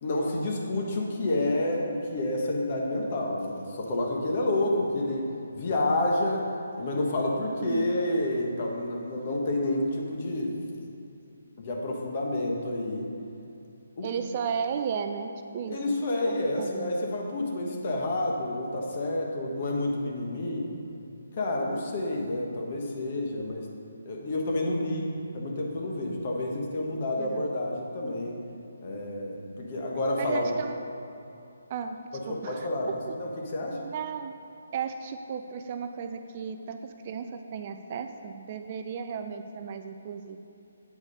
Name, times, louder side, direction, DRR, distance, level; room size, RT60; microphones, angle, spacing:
voice 1, 0.0-5.3 5.5-6.5 6.8-10.6 11.6-13.1 14.0-14.1 15.7-20.7 21.3-23.7 24.0-25.0 25.3-28.4 28.8-30.5 32.3-33.8, left 1 dB, 40° left, 0 dB, 1.2 m, -29 dB
voice 2, 7.6-7.9 14.0-15.9 16.2-16.9 27.2-27.5 30.2-30.8 31.7-32.0 32.3-32.7 33.1-33.2 33.8-34.3 34.7-40.4, right 6 dB, 35° right, 7 dB, 0.3 m, -35 dB
8.3 x 4.8 x 5.4 m, 2.7 s
hypercardioid pair, 160°, 0 cm